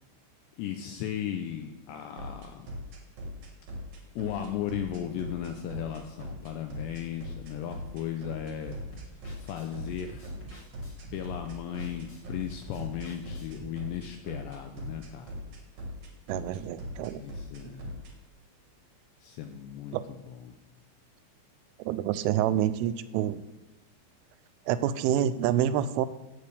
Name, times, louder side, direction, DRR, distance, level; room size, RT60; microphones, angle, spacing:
voice 1, 0.6-2.7 4.2-8.8 9.4-10.3 11.1-15.4 17.1-18.0 19.2-20.5, left 10 dB, 90° left, 5 dB, 2.5 m, -36 dB
sound 1, 2.2-18.1, equal, 60° right, 1.9 m, -40 dB
sound 2, 8.6-13.7, right 4 dB, 45° left, 1.2 m, -47 dB
voice 2, 16.3-17.2 17.6-17.7 19.9-20.0 21.9-23.4 24.7-26.1, right 11 dB, 85° right, 13 dB, 3.1 m, -27 dB
15.0 x 8.5 x 3.4 m, 0.99 s
omnidirectional pair, 5.6 m